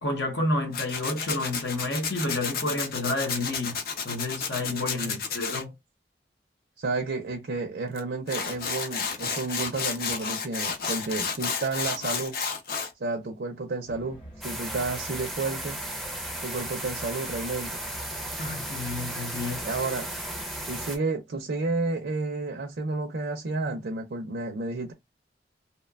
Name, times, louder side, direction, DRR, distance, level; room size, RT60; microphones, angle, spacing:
voice 1, 0.0-3.8 4.0-5.7 18.4-19.7, left 2 dB, 80° left, 0.9 m, -30 dB
Tools, 0.7-5.6 8.0-8.1 8.3-12.9, left 6 dB, 55° left, 0.5 m, -31 dB
voice 2, 4.7-5.2 6.8-12.4 13.0-15.8 16.4-17.8 19.6-20.1 20.7-24.9, right 3 dB, 75° right, 0.5 m, -31 dB
sound 1, 13.9-20.9, equal, 30° left, 0.9 m, -46 dB
sound 2, 14.4-21.0, right 1 dB, ahead, 0.4 m, -35 dB
2.8 x 2.1 x 2.2 m
head